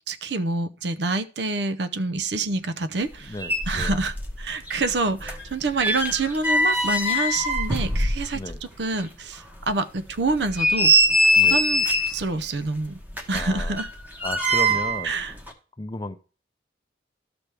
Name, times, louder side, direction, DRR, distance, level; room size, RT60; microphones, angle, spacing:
voice 1, 0.1-3.4 3.7-8.4 8.8-10.9 11.4-13.0 13.3-13.9 15.0-15.3, right 3 dB, 75° right, 0.6 m, -27 dB
sound 1, 3.1-3.2 3.4-4.4 4.7-8.6 9.0-9.1 9.6-9.7 10.3-12.2 13.1-15.1 15.4-15.5, equal, 10° right, 1.0 m, -22 dB
voice 2, 3.3-4.0 8.3-8.6 11.4-11.6 13.3-13.8 14.2-15.1 15.8-16.2, left 2 dB, 25° left, 0.5 m, -34 dB
12.5 x 5.9 x 3.4 m
head